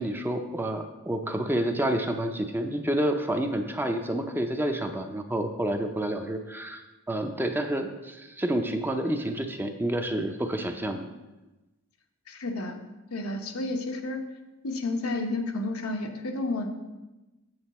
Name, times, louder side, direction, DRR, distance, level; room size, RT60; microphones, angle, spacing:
voice 1, 0.0-11.1, right 1 dB, 10° right, 5 dB, 0.5 m, -29 dB
voice 2, 12.3-12.8 13.1-14.2 14.6-16.7, left 2 dB, 85° left, 4 dB, 1.0 m, -31 dB
7.9 x 7.3 x 4.2 m, 1.1 s
head